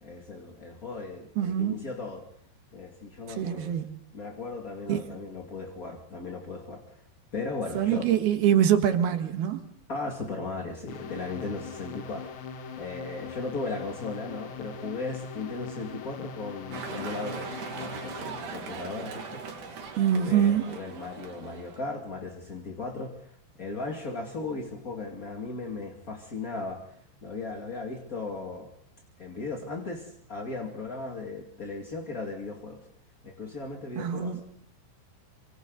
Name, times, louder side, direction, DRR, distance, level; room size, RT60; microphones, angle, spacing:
voice 1, 0.0-2.2 2.7-3.8 4.1-7.0 7.3-8.1 9.9-12.3 12.8-19.4 20.1-23.3 23.6-26.8 27.2-28.7 29.2-32.8 33.2-34.4, left 3 dB, 30° left, 1.8 m, -37 dB
voice 2, 1.4-1.7 3.4-4.0 4.9-5.0 7.7-9.6 20.0-20.6 34.0-34.4, right 9 dB, 65° right, 3.2 m, -24 dB
sound 1, 10.9-18.4, left 5 dB, 80° left, 4.2 m, -41 dB
sound 2, 16.7-21.8, right 5 dB, 50° right, 3.7 m, -40 dB
29.5 x 26.5 x 4.0 m
omnidirectional pair, 5.1 m